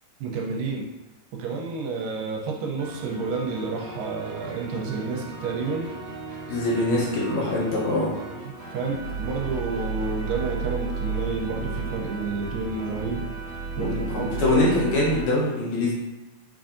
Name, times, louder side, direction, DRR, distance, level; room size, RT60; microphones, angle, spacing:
voice 1, 0.2-0.9 1.3-5.9 8.4-13.2 13.8-14.6, right 4 dB, 85° right, -1 dB, 2.3 m, -30 dB
sound 1, 2.8-15.3, right 4 dB, 70° right, 2.2 m, -34 dB
voice 2, 6.5-8.1 13.8-15.9, left 2 dB, 75° left, -6 dB, 2.1 m, -23 dB
5.3 x 2.5 x 2.5 m, 1.0 s
omnidirectional pair, 4.0 m